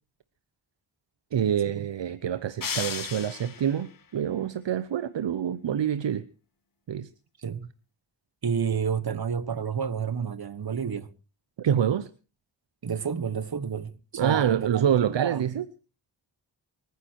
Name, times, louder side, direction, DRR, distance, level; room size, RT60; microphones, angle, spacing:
voice 1, 1.3-6.3 6.9-7.1 11.6-12.1 14.1-15.6, right 9 dB, 70° right, 0.8 m, -26 dB
sound 1, 2.6-3.9, left 6 dB, 45° left, 1.0 m, -34 dB
voice 2, 8.4-11.1 12.8-15.5, right 7 dB, 55° right, 1.3 m, -30 dB
24.0 x 9.6 x 4.6 m
cardioid pair, 60°, 46 cm